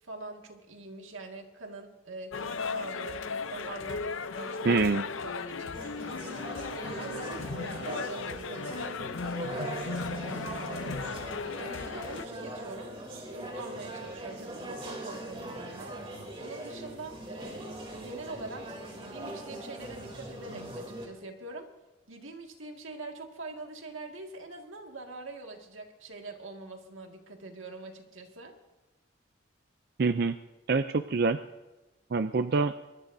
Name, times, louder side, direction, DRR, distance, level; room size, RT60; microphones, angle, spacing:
voice 1, 0.0-4.9 5.2-6.4 6.9-9.0 9.5-11.2 11.6-13.0 13.3-16.0 16.4-18.7 18.9-21.7 22.1-28.6, right 2 dB, 90° right, 3 dB, 2.0 m, -44 dB
sound 1, 2.3-12.3, left 4 dB, 85° left, 0.7 m, -36 dB
voice 2, 4.6-5.0 30.0-30.4 30.7-31.4 32.1-32.7, right 4 dB, 50° right, 10 dB, 0.4 m, -25 dB
sound 2, 5.7-21.1, right 1 dB, 30° right, 3.1 m, -41 dB
23.0 x 20.0 x 2.7 m, 1.1 s
head